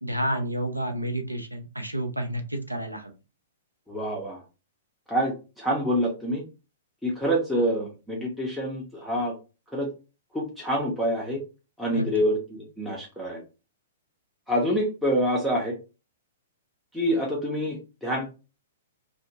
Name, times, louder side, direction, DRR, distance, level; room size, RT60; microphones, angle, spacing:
voice 1, 0.0-3.1 11.9-12.1, right 1 dB, 85° right, 5 dB, 0.5 m, -30 dB
voice 2, 3.9-4.4 5.1-6.4 7.0-9.3 9.7-9.9 10.3-11.4 11.8-13.4 14.5-15.8 16.9-18.3, equal, ahead, -4 dB, 0.6 m, -26 dB
2.5 x 2.0 x 2.8 m, 0.31 s
figure-of-eight pair, 110°, 0 cm